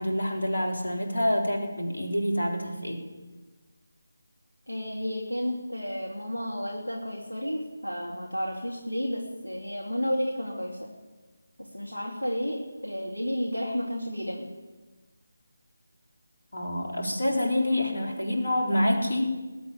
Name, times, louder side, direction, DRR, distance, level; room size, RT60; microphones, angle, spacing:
voice 1, 0.0-3.0 16.5-19.3, left 1 dB, 70° left, 0 dB, 4.1 m, -27 dB
voice 2, 4.7-10.9 11.6-14.5, equal, 90° left, -1 dB, 2.6 m, -32 dB
20.0 x 8.2 x 8.6 m, 1.3 s
figure-of-eight pair, 160°, 0 cm